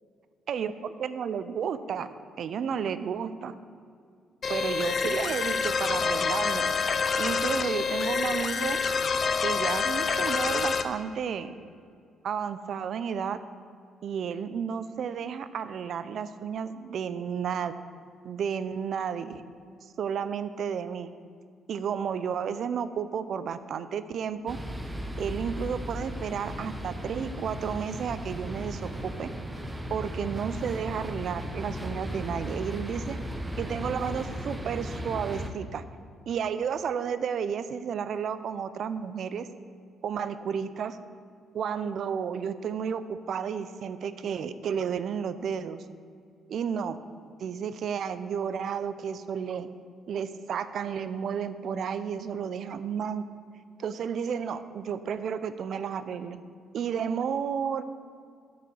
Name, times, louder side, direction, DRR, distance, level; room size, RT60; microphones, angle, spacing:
voice 1, 0.5-3.6 4.5-6.8 7.2-8.8 9.4-11.6 12.2-13.4 14.0-17.7 18.2-19.4 20.0-21.1 21.7-24.6 25.2-29.3 29.9-33.2 33.6-35.9 36.3-39.5 40.0-41.0 41.5-45.8 46.5-47.0 47.4-49.7 50.1-53.2 53.8-56.4 56.7-57.8, right 7 dB, 65° right, 13 dB, 0.4 m, -32 dB
sound 1, 4.4-10.8, left 5 dB, 50° left, 0.5 m, -27 dB
sound 2, 24.5-35.5, equal, 15° right, 0.8 m, -36 dB
9.5 x 4.8 x 6.8 m, 2.2 s
cardioid pair, 90°, 0 cm